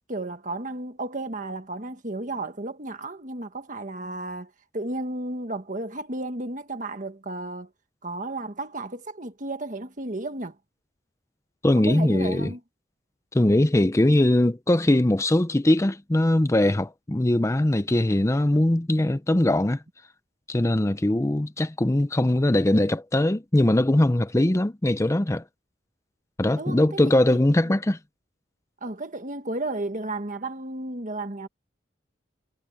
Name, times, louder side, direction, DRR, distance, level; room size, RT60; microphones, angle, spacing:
voice 1, 0.1-7.7 8.0-10.6 11.8-12.6 26.6-27.4 28.8-31.5, right 2 dB, 45° right, 1.6 m, -33 dB
voice 2, 11.6-12.5 13.3-19.8 20.5-25.4 26.4-28.0, left 1 dB, 15° left, 0.5 m, -21 dB
head